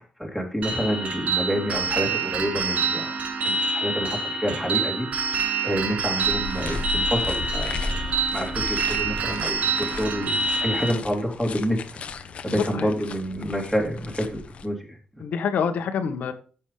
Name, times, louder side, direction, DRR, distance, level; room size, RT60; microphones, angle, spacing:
voice 1, 0.2-3.1 3.4-11.8 12.4-15.0, equal, ahead, 3.1 m, -28 dB
sound 1, 0.6-10.9, right 4 dB, 60° right, 2.0 m, -26 dB
sound 2, 6.2-14.7, left 3 dB, 45° left, 1.0 m, -35 dB
voice 2, 12.4-13.0 15.2-16.3, left 6 dB, 85° left, 1.4 m, -27 dB
14.0 x 7.2 x 3.4 m
wide cardioid pair, 165°, 3 cm